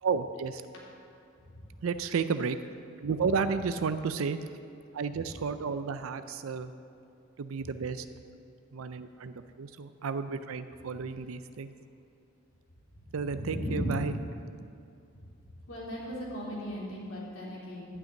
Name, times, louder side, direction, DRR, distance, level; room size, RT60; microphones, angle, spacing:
voice 1, 0.0-0.6 1.8-2.6 3.0-4.5 4.9-6.7 7.4-8.1 8.7-11.7 13.1-14.2, right 5 dB, 85° right, 10 dB, 0.5 m, -32 dB
voice 2, 12.9-13.9 15.7-18.0, equal, 80° left, -6 dB, 3.2 m, -37 dB
12.0 x 5.9 x 8.8 m, 2.5 s
head